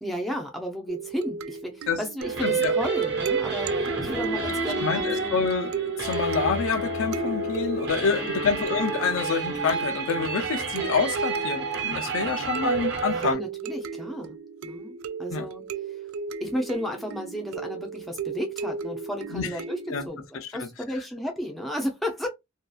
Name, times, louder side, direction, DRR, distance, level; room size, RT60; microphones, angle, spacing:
voice 1, 0.0-5.4 8.4-8.6 13.1-16.0 16.4-22.3, equal, ahead, 0.4 m, -33 dB
sound 1, 0.9-20.1, right 5 dB, 80° right, 0.3 m, -36 dB
sound 2, 2.2-13.3, right 3 dB, 50° right, 1.0 m, -29 dB
voice 2, 2.4-2.7 4.8-13.4 15.3-15.5 19.3-19.5 19.9-20.0 20.3-20.7, left 5 dB, 80° left, 0.5 m, -27 dB
2.7 x 2.3 x 2.3 m
head